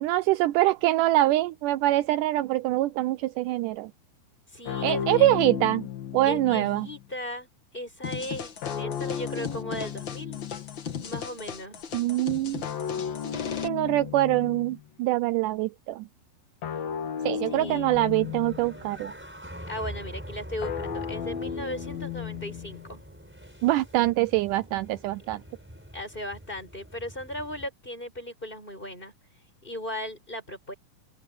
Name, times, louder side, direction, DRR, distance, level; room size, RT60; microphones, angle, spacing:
voice 1, 0.0-3.9 4.8-5.9 6.1-6.9 11.9-12.6 13.6-16.1 17.2-19.1 23.6-25.4, right 16 dB, 85° right, 1.8 m, -24 dB
voice 2, 4.5-5.3 6.3-7.5 7.7-10.4 11.0-11.8 17.5-17.9 19.7-23.0 25.3-25.4 25.9-29.1 29.6-30.7, left 1 dB, 15° left, 7.6 m, -37 dB
sound 1, 4.7-7.1 8.6-11.0 12.6-14.8 16.6-18.9 20.6-23.0, left 8 dB, 75° left, 4.3 m, -34 dB
sound 2, 8.0-13.7, left 7 dB, 55° left, 1.3 m, -37 dB
sound 3, 17.9-27.7, equal, 5° right, 4.3 m, -44 dB
open air
omnidirectional pair, 4.2 m